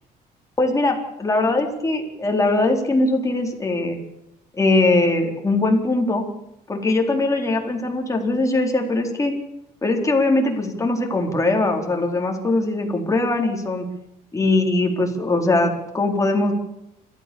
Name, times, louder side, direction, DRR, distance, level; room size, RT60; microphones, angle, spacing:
voice 1, 0.6-4.0 4.6-6.3 6.7-9.3 9.8-13.8 14.3-16.5, left 2 dB, 20° left, 2 dB, 4.1 m, -21 dB
29.0 x 13.5 x 7.1 m, 0.87 s
cardioid pair, 110°, 17 cm